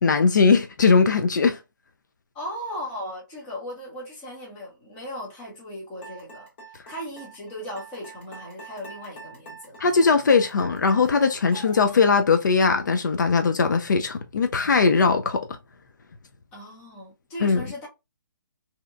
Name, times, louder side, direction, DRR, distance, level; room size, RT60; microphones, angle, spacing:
voice 1, 0.0-1.6 9.8-15.5 17.4-17.6, left 4 dB, 65° left, 0.4 m, -20 dB
voice 2, 2.3-6.5 6.9-9.8 16.5-17.9, equal, 10° left, 0.7 m, -37 dB
sound 1, 6.0-12.1, right 2 dB, 35° left, 1.1 m, -44 dB
2.8 x 2.1 x 2.4 m
hypercardioid pair, 170°, 11 cm